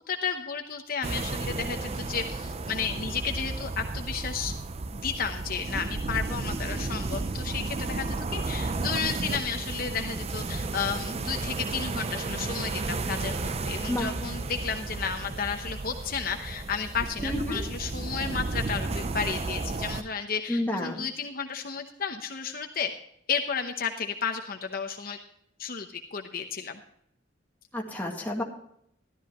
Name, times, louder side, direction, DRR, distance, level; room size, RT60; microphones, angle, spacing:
voice 1, 0.1-4.5 4.9-22.9 23.3-25.2 25.6-26.8, left 6 dB, 50° left, 5 dB, 0.8 m, -33 dB
sound 1, 1.0-20.0, right 3 dB, 35° right, 0.5 m, -33 dB
voice 2, 17.2-17.6 20.5-21.1 27.7-28.4, left 1 dB, 10° left, -1 dB, 1.9 m, -30 dB
13.0 x 12.5 x 3.0 m, 0.72 s
head